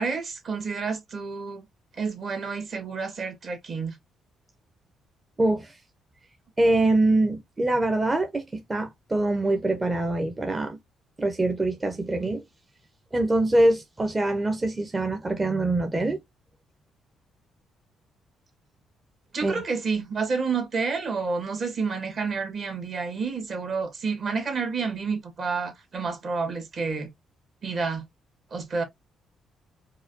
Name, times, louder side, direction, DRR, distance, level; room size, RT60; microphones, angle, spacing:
voice 1, 0.0-1.6 2.0-3.9 19.3-27.1 27.6-28.0 28.5-28.8, right 4 dB, 50° right, 1.6 m, -29 dB
voice 2, 5.4-5.8 6.6-10.8 11.2-12.4 13.1-16.2 19.4-19.6, right 2 dB, 20° right, 0.8 m, -24 dB
4.7 x 2.3 x 2.7 m
cardioid pair, 90°, 0 cm